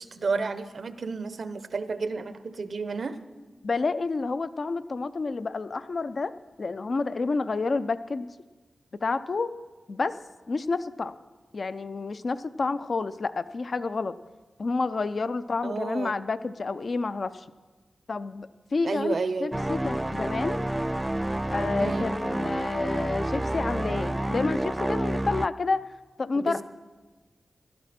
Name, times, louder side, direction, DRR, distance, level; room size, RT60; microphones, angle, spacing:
voice 1, 0.0-3.2 15.6-16.1 18.8-19.5 21.8-22.1 26.3-26.6, right 4 dB, 70° right, 12 dB, 0.8 m, -31 dB
voice 2, 3.6-6.3 6.6-8.3 9.0-9.5 9.9-10.2 10.5-11.2 11.5-14.1 14.6-17.4 18.1-20.6 21.5-25.8 26.2-26.6, left 3 dB, 65° left, 12 dB, 0.6 m, -29 dB
sound 1, 19.5-25.5, right 1 dB, 20° right, 0.3 m, -29 dB
17.5 x 12.0 x 4.3 m, 1.3 s
cardioid pair, 45°, 0 cm